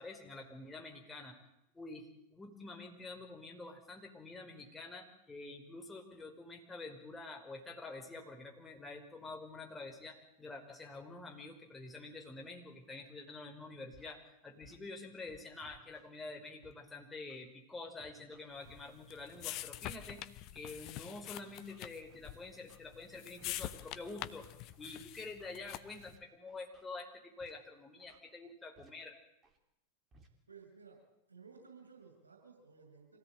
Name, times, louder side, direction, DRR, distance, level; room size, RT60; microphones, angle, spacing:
voice 1, 0.0-1.4 1.7-24.5 24.8-29.2, left 3 dB, 10° left, 2 dB, 5.1 m, -48 dB
Scratching (performance technique), 13.9-14.1 14.6-14.8 15.3-16.1 16.6-16.7 17.3-17.4 18.0-18.8 19.3-19.5 20.0-20.2 20.7-20.8 21.3-22.2 22.7-22.8 23.4-23.6 24.0-24.9 25.4-25.6 26.1-26.2 26.5-26.9 27.4-27.5 28.0-28.2 28.8-28.9 29.4-29.6 30.1-30.3, right 3 dB, 25° right, 3.5 m, -62 dB
sound 1, 18.6-26.1, left 14 dB, 40° left, 1.0 m, -46 dB
voice 2, 30.5-31.0 31.3-33.2, right 5 dB, 75° right, 2 dB, 7.1 m, -56 dB
25.5 x 17.0 x 9.1 m, 0.85 s
figure-of-eight pair, 90°, 0 cm